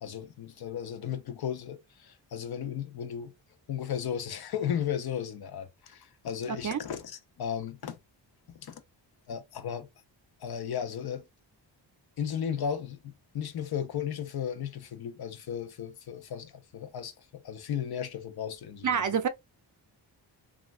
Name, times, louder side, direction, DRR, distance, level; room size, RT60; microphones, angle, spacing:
voice 1, 0.0-3.3 3.7-8.0 8.5-8.8 9.3-9.9 10.4-11.2 12.2-19.0, left 8 dB, 60° left, 0.6 m, -35 dB
voice 2, 6.5-6.8 18.8-19.3, right 7 dB, 45° right, 0.5 m, -28 dB
3.0 x 2.4 x 2.3 m
wide cardioid pair, 100°, 43 cm